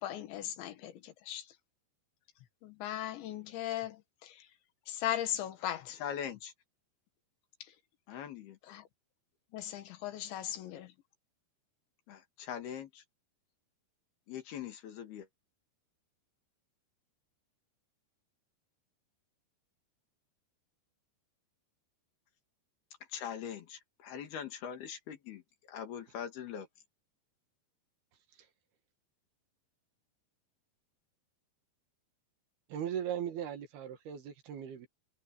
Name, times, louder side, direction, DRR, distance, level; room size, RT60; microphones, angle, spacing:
voice 1, 0.0-1.5 2.6-4.4 4.9-6.0 8.7-8.8 9.5-10.9, left 12 dB, 85° left, 4.1 m, -38 dB
voice 2, 5.6-6.5 8.1-8.6 12.1-13.0 14.3-15.3 23.1-25.4 25.7-26.7, left 8 dB, 65° left, 4.0 m, -42 dB
voice 3, 32.7-34.9, right 9 dB, 65° right, 3.6 m, -38 dB
omnidirectional pair, 5.0 m